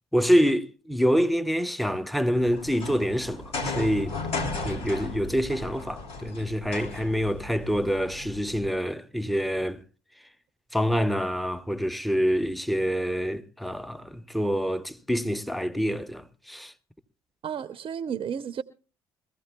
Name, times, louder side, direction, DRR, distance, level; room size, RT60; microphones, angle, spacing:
voice 1, 0.1-4.2 4.6-9.8 10.7-16.7, equal, ahead, 0.8 m, -26 dB
sound 1, 2.3-8.7, left 2 dB, 60° left, 2.7 m, -35 dB
voice 2, 17.4-18.6, right 8 dB, 50° right, 0.6 m, -32 dB
22.5 x 15.0 x 2.2 m
supercardioid pair, 60°, 11 cm